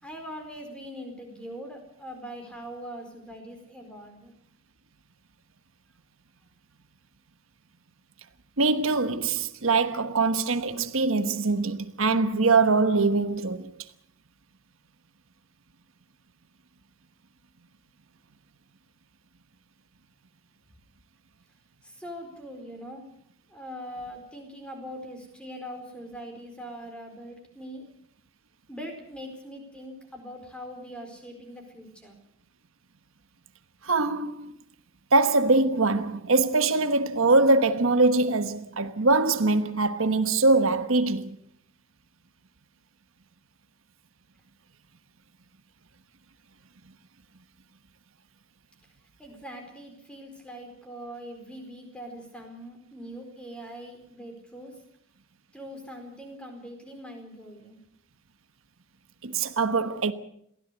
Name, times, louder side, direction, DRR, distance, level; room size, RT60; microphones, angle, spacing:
voice 1, 0.0-4.3 21.8-23.1 23.5-27.9 28.7-32.2 49.2-54.8 55.5-57.8, equal, 5° left, 4.4 m, -42 dB
voice 2, 8.6-13.7 33.8-34.5 35.1-41.4 59.2-60.1, right 3 dB, 85° right, 1.2 m, -23 dB
22.5 x 16.0 x 8.1 m
head